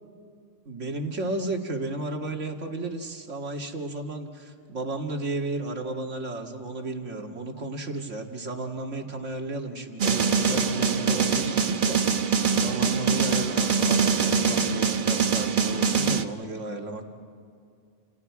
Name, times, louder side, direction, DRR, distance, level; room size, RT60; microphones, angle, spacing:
voice 1, 0.7-12.0 12.5-17.0, right 2 dB, 80° right, 2 dB, 2.4 m, -33 dB
sound 1, 10.0-16.3, right 6 dB, 45° right, 1.0 m, -23 dB
29.5 x 29.0 x 4.8 m, 2.4 s
omnidirectional pair, 1.2 m